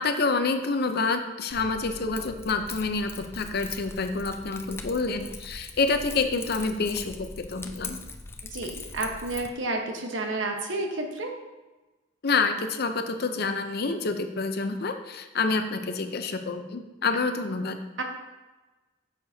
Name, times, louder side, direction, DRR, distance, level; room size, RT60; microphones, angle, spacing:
voice 1, 0.0-8.0 12.2-17.8, left 4 dB, 55° left, 7 dB, 0.7 m, -28 dB
Keys jangling, 1.5-9.5, left 3 dB, 15° left, 0.4 m, -41 dB
voice 2, 8.5-11.3 18.0-18.1, right 2 dB, 75° right, 3 dB, 1.1 m, -30 dB
9.4 x 6.7 x 2.8 m, 1.2 s
head